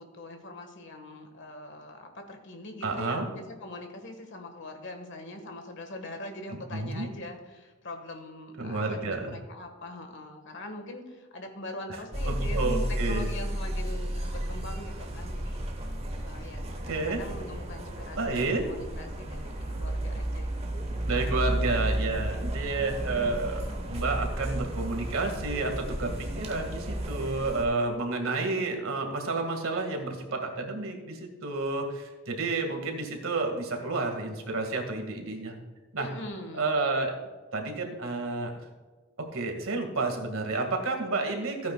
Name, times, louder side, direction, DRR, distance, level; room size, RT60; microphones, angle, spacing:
voice 1, 0.0-15.6 16.2-20.9 36.0-36.8, left 1 dB, 55° left, 5 dB, 1.5 m, -42 dB
voice 2, 2.8-3.3 6.7-7.1 8.6-9.4 12.3-13.3 16.9-17.2 18.2-18.7 21.1-35.5 35.9-36.1 36.6-37.1 37.5-38.5 39.3-41.7, right 3 dB, 70° right, 3 dB, 1.9 m, -30 dB
sound 1, 12.1-27.6, right 1 dB, 25° right, 1.1 m, -33 dB
14.5 x 9.1 x 2.3 m, 1.3 s
head